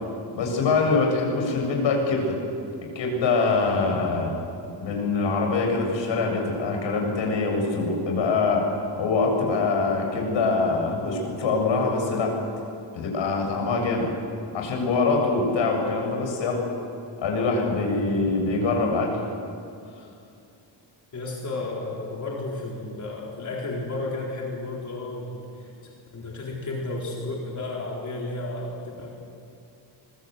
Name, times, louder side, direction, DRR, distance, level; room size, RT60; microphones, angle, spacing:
voice 1, 0.3-2.4 2.9-4.3 4.8-8.6 9.0-12.3 12.9-14.1 14.5-16.6 17.2-19.2, left 3 dB, 80° left, 1 dB, 7.5 m, -24 dB
voice 2, 21.1-25.7 26.1-29.1, left 2 dB, 40° left, -2 dB, 4.1 m, -32 dB
25.0 x 23.0 x 8.1 m, 2.5 s
cardioid pair, 135°, 45 cm